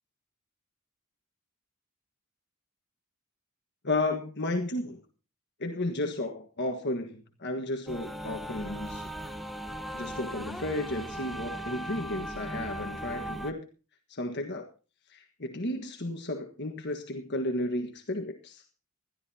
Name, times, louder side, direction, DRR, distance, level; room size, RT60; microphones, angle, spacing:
voice 1, 3.8-5.0 5.6-9.1 9.9-13.7 14.1-14.7 15.1-18.6, left 2 dB, 50° left, 1.5 m, -33 dB
sound 1, 7.9-13.5, right 1 dB, ahead, 1.1 m, -38 dB
21.5 x 13.5 x 2.8 m
head